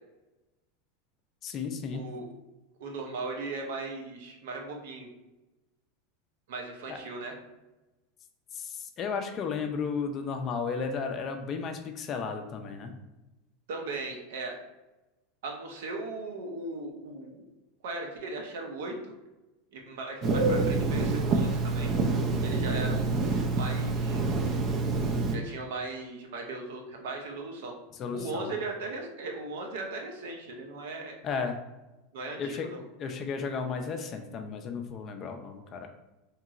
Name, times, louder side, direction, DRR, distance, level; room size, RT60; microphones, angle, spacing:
voice 1, 1.4-2.1 6.9-7.0 8.5-12.9 28.0-28.6 31.2-31.6 32.4-32.7 33.0-35.9, left 5 dB, 35° left, 5 dB, 0.4 m, -34 dB
voice 2, 1.9-2.3 2.8-5.1 6.5-7.3 13.7-14.6 15.4-17.4 17.8-19.1 19.7-21.9 22.4-23.2 23.5-24.2 25.3-27.7 28.1-31.1 32.1-32.8, right 3 dB, 80° right, 2 dB, 0.6 m, -37 dB
Telephone, 20.2-25.4, right 3 dB, 40° right, 0.4 m, -27 dB
2.9 x 2.8 x 2.4 m, 1.0 s
supercardioid pair, 125°, 0 cm